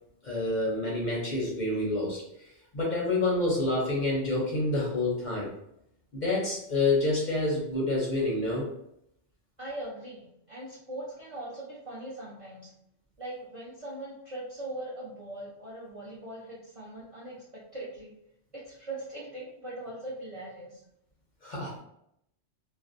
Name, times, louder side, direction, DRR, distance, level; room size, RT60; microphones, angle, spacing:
voice 1, 0.2-5.5 6.1-8.7 21.4-21.8, left 2 dB, 50° left, -4 dB, 0.6 m, -28 dB
voice 2, 9.6-12.7 13.2-18.1 18.5-20.8, right 1 dB, 45° right, -6 dB, 0.5 m, -40 dB
2.5 x 2.0 x 2.5 m, 0.77 s
omnidirectional pair, 1.2 m